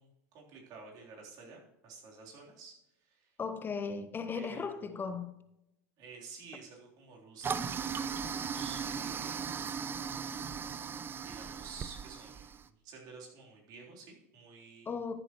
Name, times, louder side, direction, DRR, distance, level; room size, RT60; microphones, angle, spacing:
voice 1, 0.0-3.4 4.3-5.2 6.0-9.6 11.2-15.0, right 4 dB, 55° right, 3.4 m, -52 dB
voice 2, 3.4-5.4 14.9-15.2, left 5 dB, 25° left, 0.6 m, -37 dB
Toilet flush, 7.4-12.6, right 6 dB, 25° right, 0.5 m, -37 dB
13.5 x 7.8 x 3.0 m
hypercardioid pair, 85°, 8 cm